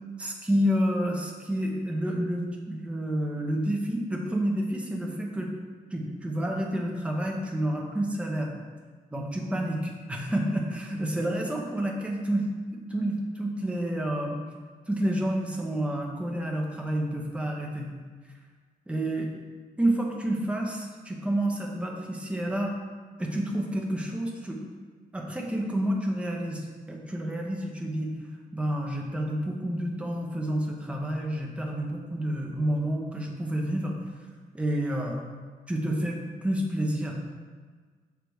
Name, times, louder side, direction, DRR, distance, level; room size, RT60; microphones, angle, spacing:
voice 1, 0.2-5.5 5.9-8.5 9.1-12.4 12.7-14.4 14.9-17.9 18.9-19.3 19.8-22.7 23.2-24.6 25.1-28.1 28.5-34.0 34.5-35.2 35.7-37.1, right 1 dB, 10° right, -1 dB, 0.8 m, -29 dB
6.4 x 3.3 x 4.7 m, 1.5 s
wide cardioid pair, 145°, 15 cm